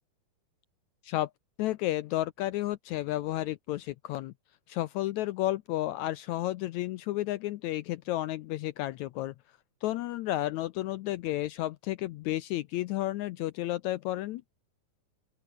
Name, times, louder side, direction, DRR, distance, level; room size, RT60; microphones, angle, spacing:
voice 1, 1.6-4.3 4.7-9.3 9.8-14.4, left 15 dB, 80° left, 1.7 m, -32 dB
open air
omnidirectional pair, 3.9 m